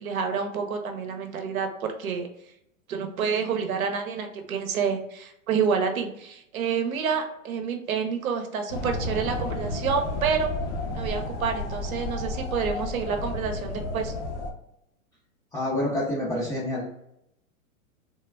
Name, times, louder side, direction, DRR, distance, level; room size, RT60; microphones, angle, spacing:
voice 1, 0.0-2.3 2.9-10.5 10.9-14.1, right 6 dB, 80° right, 5 dB, 0.7 m, -28 dB
sound 1, 8.7-14.5, left 2 dB, 55° left, 0.7 m, -32 dB
voice 2, 15.5-16.8, left 1 dB, 10° left, -9 dB, 0.4 m, -27 dB
3.3 x 2.2 x 2.2 m, 0.78 s
hypercardioid pair, 120°, 42 cm